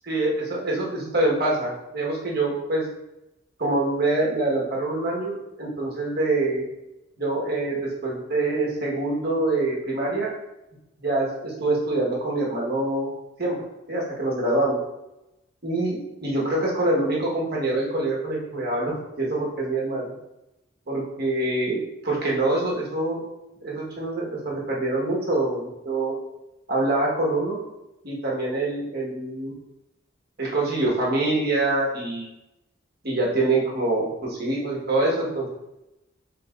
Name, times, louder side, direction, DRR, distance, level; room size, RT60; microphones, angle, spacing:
voice 1, 0.1-2.9 3.6-6.6 7.2-10.3 11.0-13.1 13.4-13.6 13.9-14.8 15.6-20.1 20.9-23.2 23.6-26.1 26.7-27.6 28.0-29.5 30.4-32.3 33.0-35.5, right 2 dB, 55° right, -3 dB, 1.2 m, -25 dB
5.5 x 3.5 x 2.4 m, 0.92 s
head